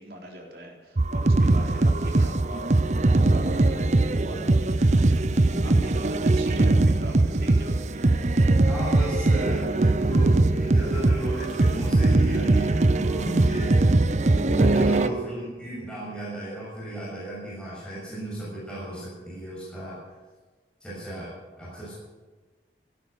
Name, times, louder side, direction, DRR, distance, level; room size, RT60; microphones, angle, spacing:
voice 1, 0.0-4.7 5.6-8.2, right 1 dB, 60° right, -1 dB, 4.0 m, -40 dB
sound 1, 1.0-15.1, right 2 dB, 40° right, 0.6 m, -21 dB
voice 2, 5.2-5.8 8.7-14.0 14.2-20.0 20.8-21.9, right 1 dB, 5° left, -8 dB, 6.8 m, -34 dB
15.5 x 12.5 x 6.8 m, 1.3 s
head